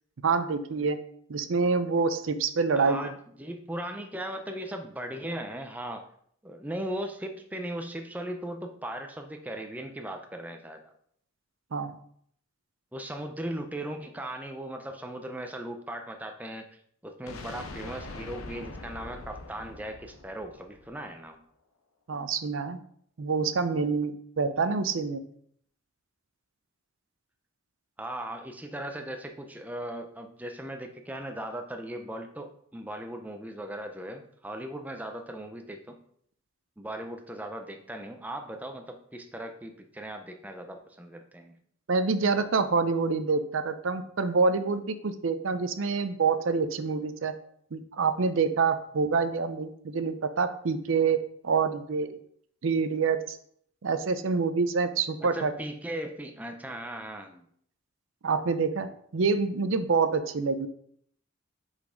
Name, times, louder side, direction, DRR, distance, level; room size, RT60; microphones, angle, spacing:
voice 1, 0.2-1.0 1.3-3.1 11.7-11.9 22.1-22.8 23.2-25.2 41.9-47.3 47.7-51.2 51.4-52.2 52.6-53.4 53.8-55.5 58.2-58.9 59.1-60.7, right 4 dB, 65° right, 11 dB, 0.5 m, -26 dB
voice 2, 2.7-6.1 6.4-10.9 12.9-16.7 17.0-21.4 28.0-36.0 36.8-41.6 55.2-57.5, right 1 dB, 5° right, 4 dB, 0.4 m, -38 dB
sound 1, 17.3-21.2, left 2 dB, 85° left, 0.8 m, -43 dB
5.7 x 4.2 x 5.0 m, 0.64 s
head